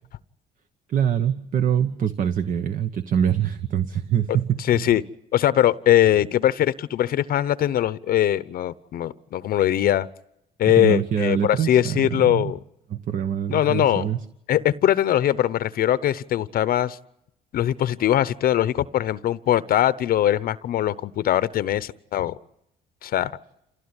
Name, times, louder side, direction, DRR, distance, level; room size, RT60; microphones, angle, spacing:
voice 1, 0.9-4.9 10.8-12.5 12.9-14.2, right 9 dB, 55° right, 10 dB, 1.2 m, -24 dB
voice 2, 4.6-5.0 5.3-10.1 10.6-12.6 13.5-14.1 14.5-17.0 17.5-22.4 23.0-23.3, left 12 dB, 60° left, 16 dB, 0.8 m, -21 dB
28.0 x 16.0 x 9.8 m, 0.81 s
cardioid pair, 110°, 17 cm